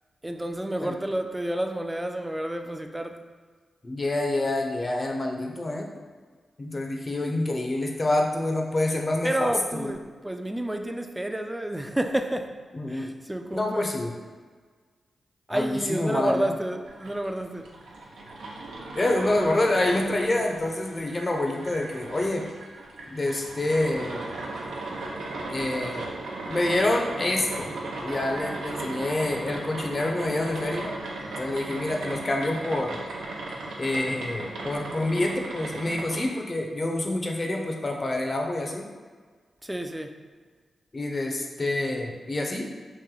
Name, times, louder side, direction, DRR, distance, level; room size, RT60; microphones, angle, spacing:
voice 1, 0.2-3.1 9.2-12.5 12.9-13.8 15.5-17.6 39.6-40.1, right 1 dB, 15° right, 5 dB, 0.4 m, -30 dB
voice 2, 3.8-5.9 6.6-9.9 12.7-13.1 13.5-14.1 15.5-16.5 18.9-22.5 23.1-24.2 25.5-26.0 26.5-27.7 28.0-30.9 31.4-33.0 33.8-38.8 40.9-42.6, left 2 dB, 45° left, 1 dB, 0.6 m, -27 dB
sound 1, 16.9-36.3, right 2 dB, 85° right, 0.5 m, -37 dB
3.1 x 2.6 x 3.8 m, 1.5 s
supercardioid pair, 40°, 0 cm